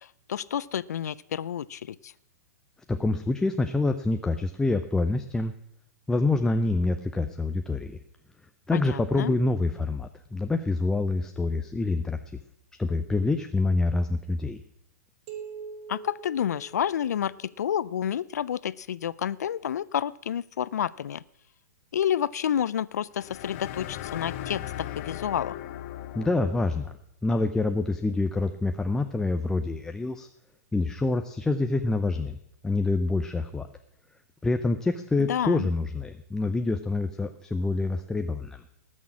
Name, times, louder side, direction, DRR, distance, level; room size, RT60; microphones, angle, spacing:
voice 1, 0.0-2.1 8.7-9.4 15.9-21.2 21.9-25.6 35.2-35.7, left 9 dB, 80° left, 19 dB, 0.4 m, -30 dB
voice 2, 2.9-5.5 6.1-8.0 8.7-12.2 12.8-14.6 26.1-27.0 27.2-30.3 30.7-32.4 32.6-33.7 34.4-38.6, left 3 dB, 5° left, 7 dB, 0.6 m, -26 dB
sound 1, 15.3-17.7, right 6 dB, 45° right, 5.0 m, -43 dB
sound 2, 23.2-26.9, left 12 dB, 50° left, 0.8 m, -38 dB
18.5 x 6.4 x 7.2 m, 0.78 s
hypercardioid pair, 130°, 9 cm